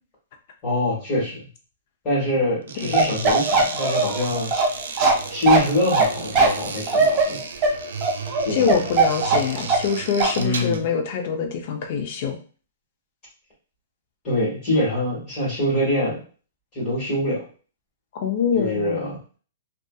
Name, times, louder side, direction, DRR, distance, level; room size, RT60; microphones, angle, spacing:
voice 1, 0.6-1.4 2.0-4.5 4.9-7.4 8.4-8.8 10.3-10.8 14.2-16.2 16.7-17.4 18.5-19.2, left 1 dB, 25° left, -8 dB, 1.5 m, -24 dB
sound 1, 2.6-10.9, right 5 dB, 90° right, 0.4 m, -34 dB
Bark, 2.9-9.9 10.2-10.4, right 4 dB, 25° right, 0.5 m, -19 dB
voice 2, 8.5-12.4 18.1-19.1, left 6 dB, 45° left, 5 dB, 0.5 m, -25 dB
2.6 x 2.4 x 2.3 m, 0.38 s
hypercardioid pair, 165°, 0 cm